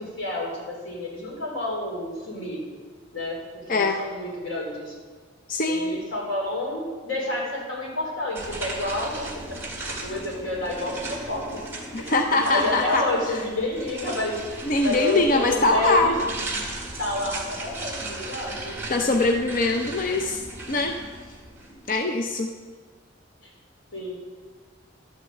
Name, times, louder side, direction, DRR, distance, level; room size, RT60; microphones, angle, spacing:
voice 1, 0.0-2.6 3.1-3.4 3.7-4.9 5.7-9.6 10.0-11.5 12.0-12.1 12.4-14.6 14.8-16.1 17.0-18.8 23.4-23.5 23.9-24.2, left 1 dB, 90° left, -3 dB, 4.3 m, -29 dB
voice 2, 5.5-6.0 11.9-13.4 14.6-16.1 18.9-20.9 21.9-22.5, left 2 dB, 45° left, 4 dB, 0.6 m, -23 dB
sound 1, 8.3-21.9, right 2 dB, 10° right, 1.5 m, -36 dB
12.0 x 6.4 x 7.7 m, 1.5 s
head